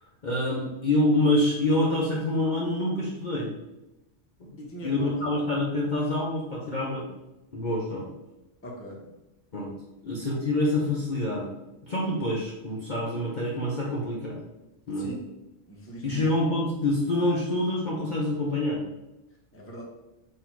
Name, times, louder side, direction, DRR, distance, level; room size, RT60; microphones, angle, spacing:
voice 1, 0.2-3.5 4.8-7.1 7.5-8.1 9.5-9.7 10.0-11.5 11.8-14.4 14.9-15.1 16.0-18.8, left 1 dB, 45° left, -4 dB, 0.8 m, -26 dB
voice 2, 4.6-5.3 8.6-9.1 14.9-15.2 15.7-16.3 19.5-19.8, equal, 15° left, -2 dB, 0.8 m, -39 dB
4.2 x 2.7 x 4.5 m, 0.97 s
omnidirectional pair, 1.3 m